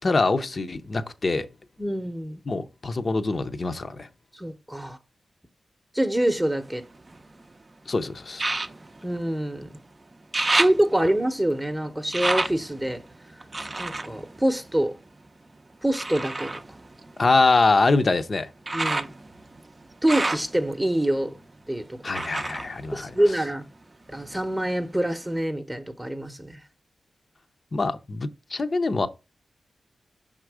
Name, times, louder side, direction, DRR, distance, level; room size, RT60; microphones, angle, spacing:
voice 1, 0.0-1.5 2.5-4.1 7.9-8.5 17.2-18.5 22.0-23.1 27.7-29.1, left 3 dB, 45° left, 0.7 m, -24 dB
voice 2, 1.8-2.4 4.3-5.0 5.9-6.8 9.0-9.7 10.5-13.0 13.8-15.0 15.8-16.5 18.7-19.1 20.0-21.3 21.7-22.0 22.9-23.6 24.1-26.6, right 1 dB, 10° right, 0.8 m, -25 dB
sound 1, 6.2-7.5 8.3-9.8 10.1-15.3 15.9-23.8 24.1-24.9 25.4-25.5, right 2 dB, 30° right, 0.5 m, -31 dB
5.8 x 3.7 x 4.8 m
cardioid pair, 80°, 0 cm